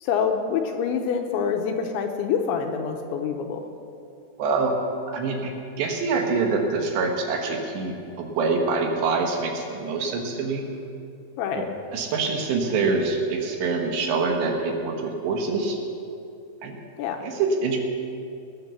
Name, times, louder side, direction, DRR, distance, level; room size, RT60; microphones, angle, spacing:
voice 1, 0.0-3.6 11.4-11.7 17.0-17.2, left 6 dB, 80° left, 4 dB, 3.0 m, -26 dB
voice 2, 4.4-4.8 5.1-5.5 5.8-10.6 11.5-11.6 11.9-15.8 16.6-16.8 17.2-17.8, right 4 dB, 70° right, 2 dB, 3.3 m, -25 dB
20.0 x 9.1 x 6.9 m, 2.6 s
omnidirectional pair, 5.7 m